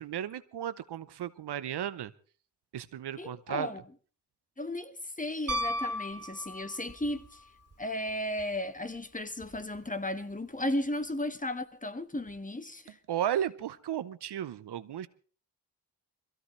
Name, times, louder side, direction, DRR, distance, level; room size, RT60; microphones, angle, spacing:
voice 1, 0.0-2.1 2.7-3.7 13.1-15.1, right 10 dB, 80° right, 0.8 m, -34 dB
voice 2, 3.2-3.8 4.6-7.4 7.8-13.0, left 1 dB, 20° left, 1.5 m, -35 dB
Piano, 5.5-7.1 9.4-9.5, left 1 dB, 35° right, 2.6 m, -34 dB
22.5 x 16.0 x 3.2 m
cardioid pair, 50°, 40 cm